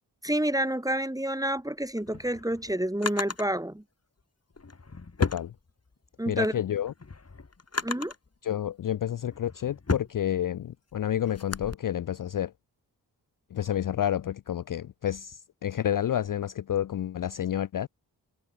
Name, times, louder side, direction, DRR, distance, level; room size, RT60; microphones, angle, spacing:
voice 1, 0.2-3.8 6.2-6.5 7.8-8.1, right 1 dB, 10° right, 2.2 m, -28 dB
Drawer open or close, 1.8-3.5 4.5-6.1 6.6-8.3 8.9-11.8, left 4 dB, 35° left, 2.0 m, -34 dB
voice 2, 5.2-5.5 6.3-6.9 8.4-12.5 13.5-17.9, left 10 dB, 55° left, 0.4 m, -30 dB
wide cardioid pair, 65°, 41 cm